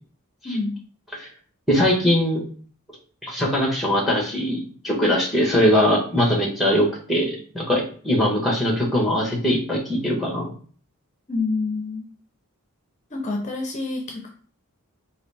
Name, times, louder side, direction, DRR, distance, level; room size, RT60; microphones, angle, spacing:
voice 1, 1.7-2.4 3.2-10.5, equal, ahead, -2 dB, 1.1 m, -21 dB
voice 2, 11.3-12.1 13.1-14.3, left 3 dB, 35° left, 1 dB, 0.6 m, -27 dB
4.0 x 2.6 x 3.3 m, 0.43 s
head